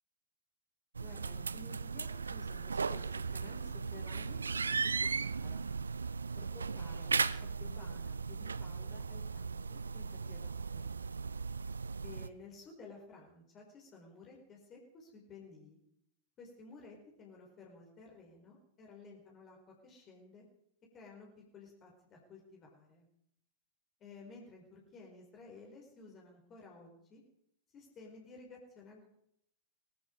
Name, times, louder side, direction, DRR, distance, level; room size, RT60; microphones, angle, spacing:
voice 1, 1.0-5.6 6.3-7.3 7.6-10.9 12.0-15.8 16.4-19.6 19.8-20.4 20.9-23.1 24.0-27.2 27.7-29.1, left 3 dB, 30° left, 0 dB, 4.9 m, -54 dB
sound 1, 1.0-12.3, right 5 dB, 75° right, 0.5 m, -37 dB
21.5 x 13.5 x 4.8 m, 0.73 s
figure-of-eight pair, 90°, 0 cm